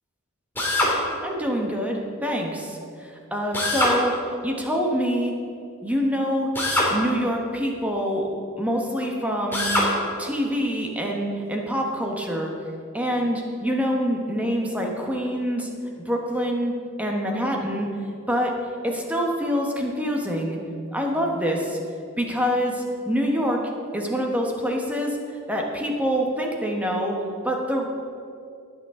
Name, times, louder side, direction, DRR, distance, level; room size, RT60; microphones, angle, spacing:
Drill, 0.5-1.0 3.5-4.0 6.5-6.9 9.5-9.9, left 1 dB, 10° left, 2.4 m, -22 dB
voice 1, 1.2-4.1 4.4-5.3 5.8-6.5 6.9-8.3 8.6-9.8 10.2-12.5 12.9-15.7 16.0-16.7 17.0-17.9 18.3-18.5 18.8-20.6 20.9-21.8 22.2-23.6 23.9-25.2 25.5-27.2 27.4-27.9, equal, 5° right, 0 dB, 1.2 m, -25 dB
19.0 x 6.7 x 3.8 m, 2.5 s
head